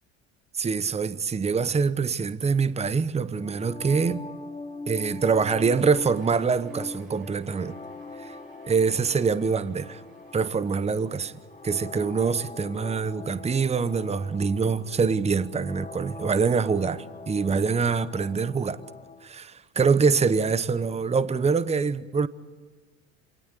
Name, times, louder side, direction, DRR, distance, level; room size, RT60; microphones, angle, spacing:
voice 1, 0.6-4.2 4.9-7.8 8.2-8.4 8.7-10.0 10.3-11.3 11.6-18.8 19.2-22.3, right 5 dB, 20° right, 0.9 m, -25 dB
sound 1, 3.3-19.3, left 3 dB, 20° left, 3.1 m, -42 dB
Cheering, 5.4-12.4, right 2 dB, 75° right, 6.8 m, -52 dB
27.0 x 18.5 x 8.3 m
hypercardioid pair, 70°, 34 cm